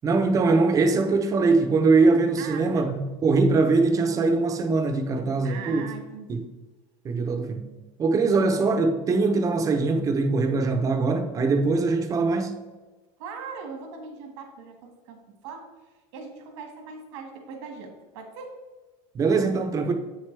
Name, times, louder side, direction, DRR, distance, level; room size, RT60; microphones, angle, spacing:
voice 1, 0.0-5.9 6.3-6.4 7.0-7.6 8.0-12.6 19.1-19.9, right 3 dB, 25° right, 0.8 m, -22 dB
voice 2, 2.4-2.9 5.4-6.4 13.2-15.7 16.1-18.5, right 5 dB, 85° right, 1.9 m, -40 dB
8.0 x 6.6 x 3.4 m
cardioid pair, 160°, 14 cm